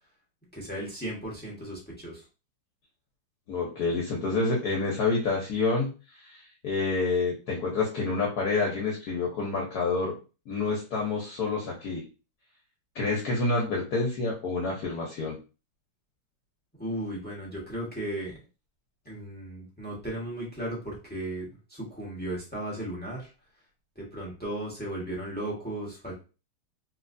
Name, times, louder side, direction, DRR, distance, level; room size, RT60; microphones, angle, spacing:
voice 1, 0.5-2.2 16.8-18.4 19.0-23.3 23.9-26.1, right 1 dB, 15° left, -4 dB, 0.4 m, -35 dB
voice 2, 3.5-5.9 6.3-10.2 10.5-12.1 12.9-15.4, left 3 dB, 60° left, -1 dB, 1.1 m, -28 dB
3.1 x 3.1 x 2.5 m, 0.32 s
omnidirectional pair, 2.3 m